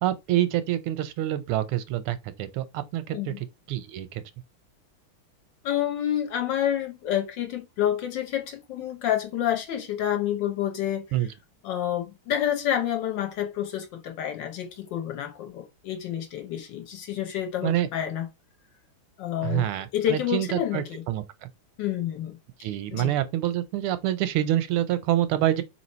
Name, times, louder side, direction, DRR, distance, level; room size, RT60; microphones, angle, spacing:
voice 1, 0.0-3.3 3.7-4.2 11.1-11.3 17.6-17.9 19.4-21.5 22.6-25.6, right 13 dB, 90° right, 1.5 m, -26 dB
voice 2, 5.6-11.2 11.6-18.3 19.2-19.6 19.9-21.0 21.8-22.4 22.9-23.1, left 11 dB, 65° left, 1.3 m, -28 dB
3.3 x 2.9 x 4.2 m
omnidirectional pair, 2.3 m